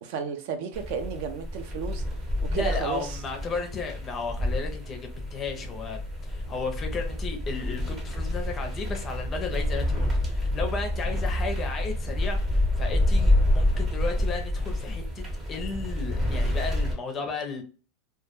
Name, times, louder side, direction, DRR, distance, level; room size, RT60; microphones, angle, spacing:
voice 1, 0.0-2.0 2.5-3.2, right 6 dB, 55° right, 0.4 m, -33 dB
sound 1, 0.7-17.0, left 1 dB, 20° right, 0.7 m, -28 dB
voice 2, 2.5-17.6, left 4 dB, 20° left, 0.5 m, -34 dB
2.1 x 2.1 x 2.9 m
supercardioid pair, 160°, 0 cm